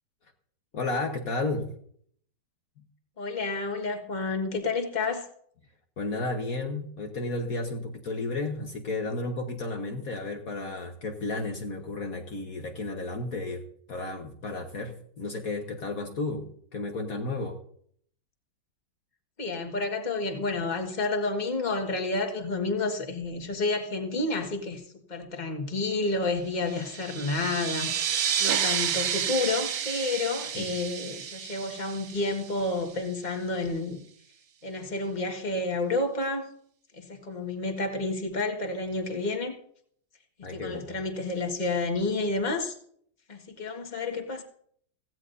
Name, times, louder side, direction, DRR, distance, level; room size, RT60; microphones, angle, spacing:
voice 1, 0.7-1.7 2.8-2.9 6.0-13.6 13.9-17.6 30.5-30.7 40.4-40.8, left 2 dB, 55° left, 3 dB, 1.6 m, -33 dB
voice 2, 3.2-5.3 19.4-27.9 28.4-34.0 34.6-36.5 36.9-39.5 40.4-42.8 43.3-44.4, left 3 dB, 25° left, 3 dB, 1.7 m, -30 dB
sound 1, 26.7-32.9, right 8 dB, 60° right, 1.2 m, -31 dB
17.0 x 16.0 x 2.7 m, 0.62 s
omnidirectional pair, 1.9 m